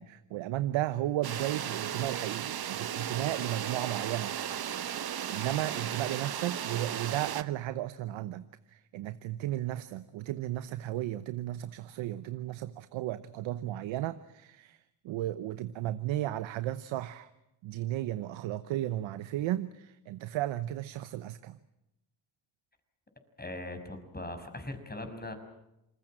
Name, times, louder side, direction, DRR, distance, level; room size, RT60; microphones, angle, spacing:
voice 1, 0.0-4.7 5.3-17.3 17.6-21.6, right 14 dB, 80° right, 13 dB, 1.0 m, -34 dB
sound 1, 1.2-7.4, right 9 dB, 50° right, 1.2 m, -35 dB
voice 2, 23.4-25.3, left 2 dB, 20° left, 7 dB, 6.0 m, -40 dB
28.0 x 20.5 x 7.7 m, 0.89 s
supercardioid pair, 60°, 46 cm